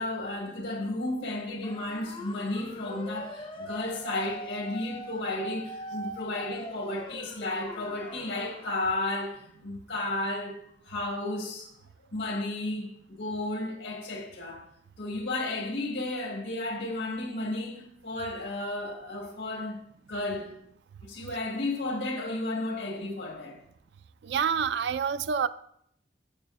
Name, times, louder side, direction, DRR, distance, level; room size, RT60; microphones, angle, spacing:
voice 1, 0.0-10.6 10.8-11.7 12.1-14.7 15.0-19.8 20.1-20.5 21.0-23.6, left 2 dB, 80° left, 1.6 m, -33 dB
sound 1, 1.6-8.8, equal, 30° left, 0.5 m, -42 dB
voice 2, 24.3-25.5, right 7 dB, 70° right, 0.3 m, -27 dB
8.6 x 7.5 x 2.5 m
head